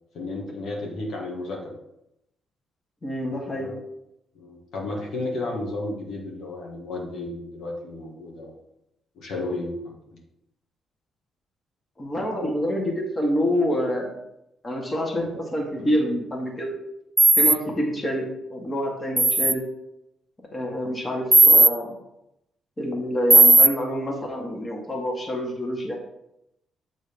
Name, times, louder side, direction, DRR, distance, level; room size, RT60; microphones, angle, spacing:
voice 1, 0.1-1.7 3.3-3.7 4.4-8.5 9.2-9.7 10.1-10.2 15.8-15.9, left 2 dB, 70° left, -1 dB, 1.8 m, -33 dB
voice 2, 3.0-3.7 12.0-14.1 14.6-16.7 17.4-18.2 18.5-19.6 20.5-22.0 22.8-26.0, equal, 25° left, 0 dB, 1.6 m, -27 dB
sound 1, 17.2-17.5 19.2-19.5 21.3-21.7 23.3-23.7, right 3 dB, 15° right, 0.4 m, -14 dB
7.2 x 3.9 x 5.2 m, 0.84 s
cardioid pair, 90°, 0 cm